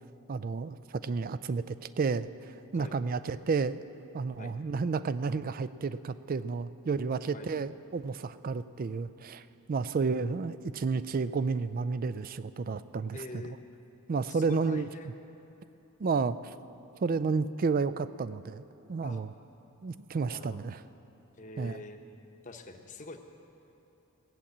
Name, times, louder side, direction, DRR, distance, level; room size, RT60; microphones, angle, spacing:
voice 1, 0.3-2.3 2.7-3.8 4.1-13.2 14.1-14.9 16.0-16.5 17.0-18.6 18.9-19.3 19.8-20.8 21.6-21.8, right 4 dB, 40° right, 14 dB, 0.3 m, -31 dB
voice 2, 13.1-13.6 14.3-15.2 19.0-19.2 20.3-20.6 21.4-22.0 22.4-23.2, left 3 dB, 35° left, 5 dB, 0.9 m, -45 dB
17.0 x 7.3 x 8.4 m, 2.9 s
head